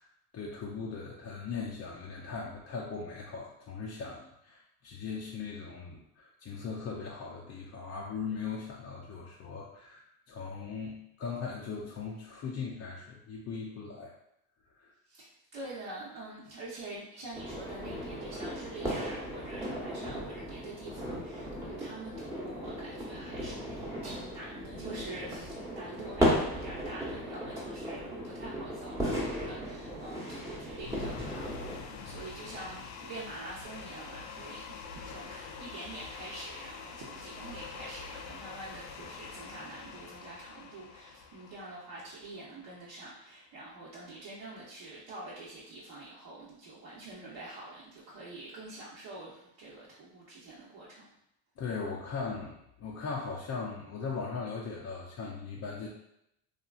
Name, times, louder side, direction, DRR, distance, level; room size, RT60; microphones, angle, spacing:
voice 1, 0.3-14.1 14.8-14.9 51.6-55.9, left 5 dB, 30° left, -3 dB, 0.5 m, -39 dB
voice 2, 15.1-23.8 24.0-51.1, right 2 dB, 55° right, -7 dB, 0.9 m, -46 dB
sound 1, 17.3-31.8, equal, 5° right, 0.9 m, -36 dB
sound 2, 30.8-42.9, left 5 dB, 85° left, 0.5 m, -45 dB
2.9 x 2.4 x 2.3 m, 0.79 s
supercardioid pair, 80°, 50 cm